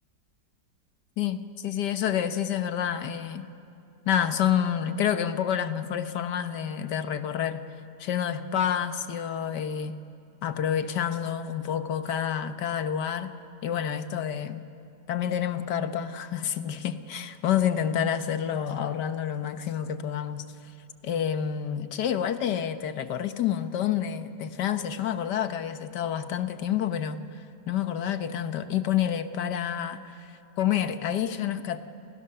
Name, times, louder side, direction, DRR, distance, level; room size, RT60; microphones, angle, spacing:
voice 1, 1.2-3.5 4.1-7.6 8.0-10.0 10.4-13.3 13.6-14.7 15.1-20.5 21.0-31.8, left 9 dB, 75° left, 10 dB, 1.7 m, -28 dB
29.5 x 29.5 x 6.8 m, 2.6 s
omnidirectional pair, 1.8 m